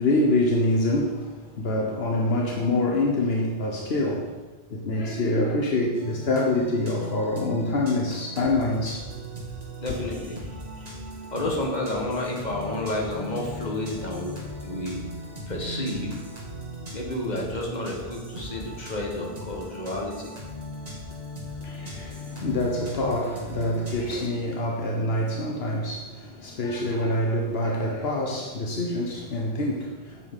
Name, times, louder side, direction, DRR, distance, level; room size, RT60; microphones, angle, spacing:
voice 1, 0.0-4.4 4.7-9.1 9.9-10.0 21.6-30.3, left 1 dB, 75° left, 1.2 m, -26 dB
sound 1, 5.9-24.3, right 1 dB, 40° right, 1.9 m, -38 dB
voice 2, 9.8-10.4 10.8-10.9 11.3-15.0 15.5-16.1 16.9-20.3, left 1 dB, 45° left, 1.9 m, -31 dB
8.4 x 7.4 x 5.4 m
omnidirectional pair, 1.0 m